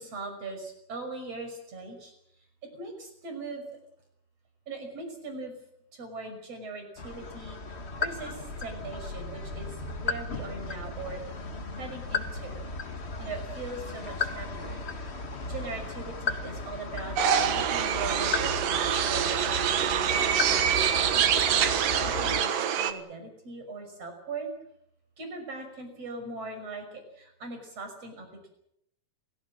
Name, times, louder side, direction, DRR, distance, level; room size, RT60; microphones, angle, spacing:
voice 1, 0.0-2.1 2.7-3.8 4.7-5.5 5.9-7.6 8.0-11.2 11.8-12.6 13.2-14.8 15.5-19.8 20.2-24.5 25.2-26.9 27.2-28.5, right 3 dB, 45° right, 5 dB, 6.9 m, -40 dB
sound 1, 7.0-22.4, left 3 dB, 40° left, 0.9 m, -36 dB
sound 2, 7.7-19.1, left 1 dB, 20° right, 5.9 m, -46 dB
sound 3, 17.2-22.9, right 9 dB, 75° right, 3.1 m, -25 dB
29.0 x 16.5 x 7.8 m, 0.76 s
omnidirectional pair, 4.0 m